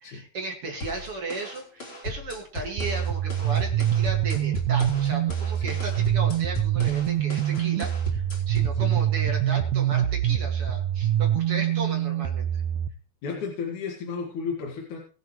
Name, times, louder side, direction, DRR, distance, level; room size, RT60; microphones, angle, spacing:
voice 1, 0.0-12.6, right 2 dB, 50° right, 2 dB, 2.9 m, -35 dB
sound 1, 0.8-8.8, equal, 40° left, 4.1 m, -38 dB
sound 2, 2.8-12.9, right 11 dB, 75° right, 1.9 m, -25 dB
voice 2, 13.2-15.0, left 5 dB, 70° left, 0 dB, 3.3 m, -33 dB
22.0 x 7.6 x 3.1 m, 0.36 s
omnidirectional pair, 3.6 m